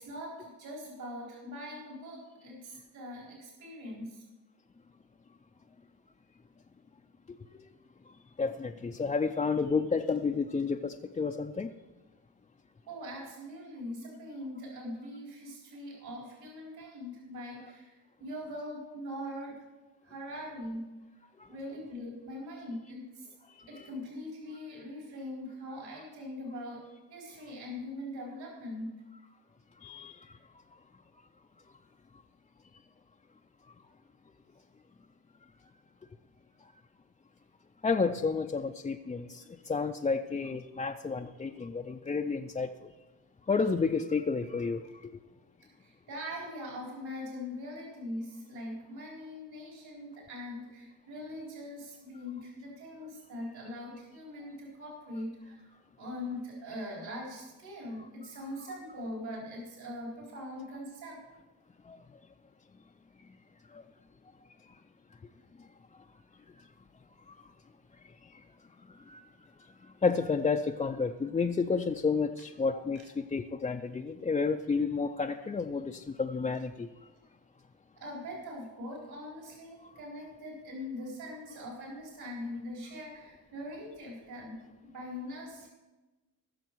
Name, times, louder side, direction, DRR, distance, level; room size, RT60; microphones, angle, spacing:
voice 1, 0.0-4.2 12.9-19.6 20.0-20.9 21.5-23.3 23.7-26.8 27.1-28.9 45.8-55.6 56.0-61.2 78.0-84.6 84.8-85.7, left 1 dB, 70° right, -3 dB, 4.2 m, -42 dB
voice 2, 8.4-11.7 23.7-23.9 29.8-30.3 37.8-42.7 43.5-44.8 61.9-62.0 63.7-63.8 67.3-67.4 69.1-69.2 70.0-76.9, left 4 dB, 20° left, 2 dB, 0.4 m, -31 dB
20.0 x 7.0 x 4.6 m, 1.2 s
cardioid pair, 125°, 39 cm